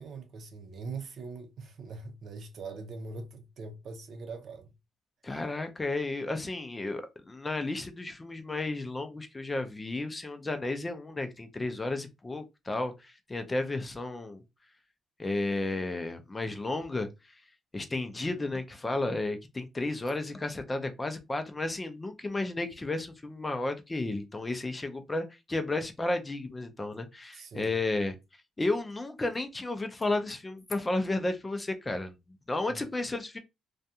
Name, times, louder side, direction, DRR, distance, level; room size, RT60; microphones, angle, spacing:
voice 1, 0.0-4.7 27.3-27.8 32.7-32.8, right 4 dB, 65° right, 0.6 m, -42 dB
voice 2, 5.2-14.4 15.2-17.1 17.7-28.1 28.6-32.2 32.5-33.4, left 2 dB, 20° left, 0.5 m, -33 dB
2.5 x 2.2 x 2.7 m
cardioid pair, 90°, 0 cm